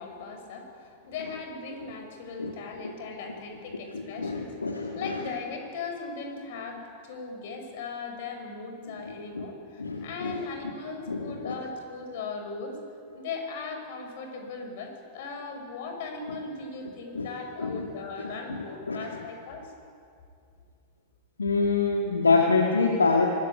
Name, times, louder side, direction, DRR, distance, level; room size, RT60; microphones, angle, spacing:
voice 1, 0.0-12.8 13.1-19.7, left 4 dB, 55° left, 4 dB, 6.1 m, -38 dB
voice 2, 3.9-5.2 9.1-9.4 9.8-10.4 11.1-11.5 17.1-17.3 17.6-17.9 18.2-19.1 21.4-23.3, left 4 dB, 75° left, 2 dB, 2.1 m, -26 dB
24.5 x 19.5 x 9.7 m, 2.3 s
figure-of-eight pair, 90°, 0 cm